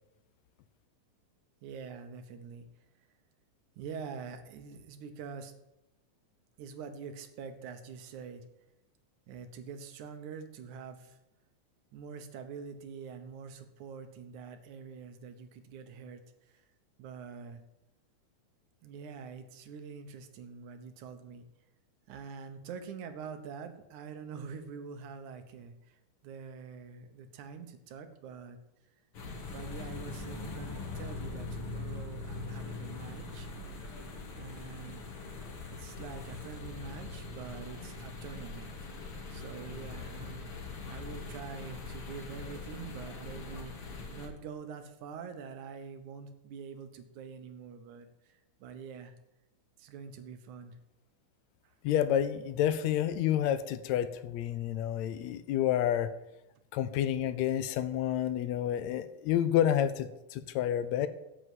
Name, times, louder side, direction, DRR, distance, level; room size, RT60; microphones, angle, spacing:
voice 1, 1.6-2.7 3.8-5.5 6.6-8.5 9.3-11.2 11.9-16.6 17.0-17.6 18.8-21.4 22.1-26.0 26.2-28.6 29.5-33.5 34.3-35.1 35.7-38.8 39.3-40.5 40.9-49.1 49.8-50.8 51.6-51.7, right 6 dB, 80° right, 8 dB, 2.4 m, -45 dB
sound 1, 29.1-44.3, left 3 dB, 50° left, 2.4 m, -42 dB
voice 2, 51.8-56.1 56.7-61.1, left 10 dB, 80° left, 13 dB, 1.8 m, -29 dB
8.3 x 7.7 x 7.6 m, 0.93 s
omnidirectional pair, 3.4 m